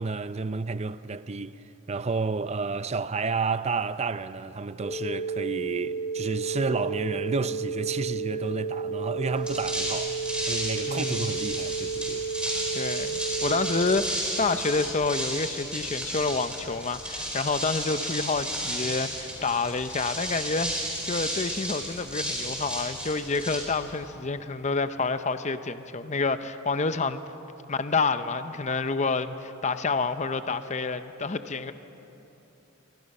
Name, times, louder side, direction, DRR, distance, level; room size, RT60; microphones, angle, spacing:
voice 1, 0.0-1.5 1.9-10.1 10.5-12.2 12.6-12.9, right 4 dB, 30° right, 0.5 m, -31 dB
sound 1, 4.8-13.8, right 5 dB, 10° left, 2.0 m, -32 dB
sound 2, 9.3-24.1, right 1 dB, 5° right, 4.8 m, -33 dB
voice 2, 10.9-11.4 12.7-27.2 27.7-31.7, left 4 dB, 35° left, 0.7 m, -28 dB
27.5 x 24.0 x 5.5 m
head